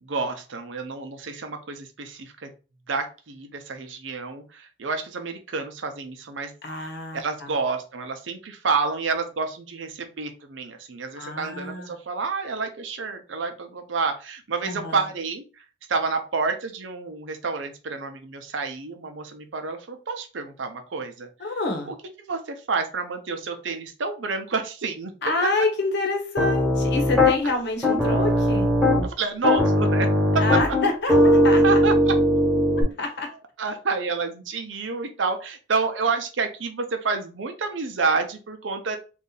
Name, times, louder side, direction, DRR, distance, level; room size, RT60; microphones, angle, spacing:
voice 1, 0.0-2.5 2.9-6.5 6.8-6.9 7.1-15.6 15.9-21.3 21.9-22.0 22.3-25.1 27.4-27.5 29.0-30.1 31.6-32.1 33.6-39.0, right 4 dB, 90° right, 6 dB, 0.7 m, -29 dB
voice 2, 6.6-7.5 11.1-11.9 14.6-15.0 21.4-21.9 25.2-28.7 30.4-31.8 33.0-33.3, left 2 dB, 65° left, 4 dB, 0.9 m, -27 dB
Piano, 26.4-27.4 27.8-29.1 29.4-32.8, left 1 dB, ahead, 1.2 m, -19 dB
2.7 x 2.5 x 3.9 m, 0.33 s
head